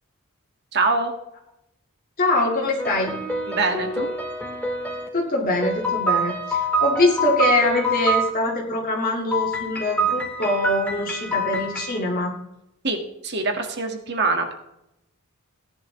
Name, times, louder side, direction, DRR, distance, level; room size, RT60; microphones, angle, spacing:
voice 1, 0.7-1.1 3.5-4.1 12.8-14.5, right 3 dB, 50° right, 4 dB, 2.0 m, -24 dB
voice 2, 2.2-3.2 5.1-12.4, left 2 dB, 40° left, -2 dB, 2.2 m, -23 dB
sound 1, 2.8-5.1 5.6-8.3 9.3-12.0, right 1 dB, 5° left, 2.1 m, -26 dB
17.5 x 10.5 x 3.3 m, 0.83 s
head